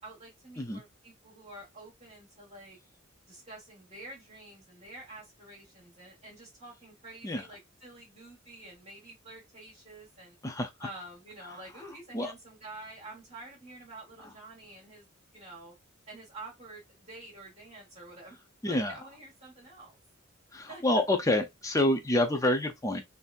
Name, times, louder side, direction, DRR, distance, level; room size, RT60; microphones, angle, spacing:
voice 1, 0.0-2.8 3.3-10.4 10.8-15.1 15.3-15.8 16.1-18.4 18.7-20.0 20.7-21.0, right 2 dB, 30° right, 1.5 m, -48 dB
voice 2, 18.6-18.9 20.5-23.0, left 1 dB, 15° left, 0.6 m, -27 dB
4.0 x 2.7 x 2.5 m
head